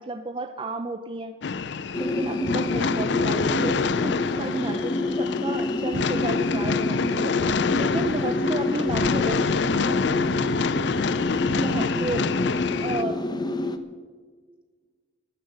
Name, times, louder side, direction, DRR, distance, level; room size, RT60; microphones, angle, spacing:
voice 1, 0.0-1.3 2.0-4.1 4.4-7.3 7.8-9.7 11.6-12.2 12.8-13.2, right 2 dB, 25° right, 7 dB, 0.6 m, -32 dB
sound 1, 1.4-13.0, left 5 dB, 60° left, 0.5 m, -27 dB
sound 2, 1.9-13.8, left 2 dB, 20° left, 0.8 m, -27 dB
voice 2, 9.2-11.4, equal, 65° right, 1 dB, 4.0 m, -47 dB
14.5 x 11.5 x 6.7 m, 1.5 s
head